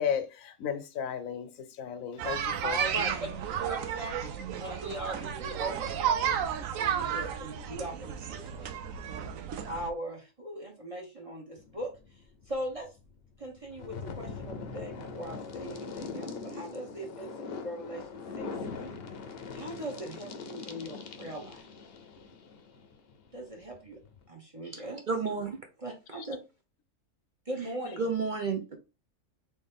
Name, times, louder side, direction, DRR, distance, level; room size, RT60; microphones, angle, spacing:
voice 1, 0.0-2.8, left 8 dB, 90° left, 1.1 m, -34 dB
sound 1, 2.2-9.9, right 8 dB, 80° right, 1.0 m, -33 dB
voice 2, 2.6-3.3 3.7-4.1 4.6-6.4 6.7-8.8 9.7-12.0 12.5-12.9 13.4-18.5 19.5-21.7 23.3-24.0 24.3-25.0 25.8-26.4 27.4-28.1, right 1 dB, 25° right, 1.1 m, -39 dB
sound 2, 11.6-24.3, left 4 dB, 55° left, 0.8 m, -42 dB
voice 3, 24.6-25.6 28.0-28.8, right 4 dB, 50° right, 0.7 m, -31 dB
4.2 x 3.2 x 3.5 m
omnidirectional pair, 1.4 m